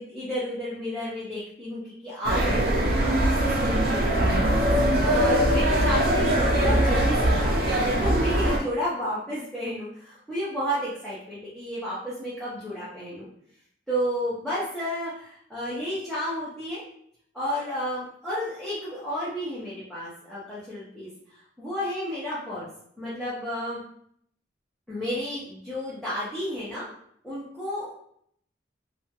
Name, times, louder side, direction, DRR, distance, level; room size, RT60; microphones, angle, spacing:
voice 1, 0.0-2.6 3.0-13.3 13.9-16.8 17.3-21.1 21.6-22.7 23.0-23.8 24.9-26.9 27.2-27.9, equal, ahead, -12 dB, 0.7 m, -32 dB
sound 1, 2.2-8.6, right 1 dB, 50° right, 0.5 m, -22 dB
2.7 x 2.2 x 2.8 m, 0.66 s
head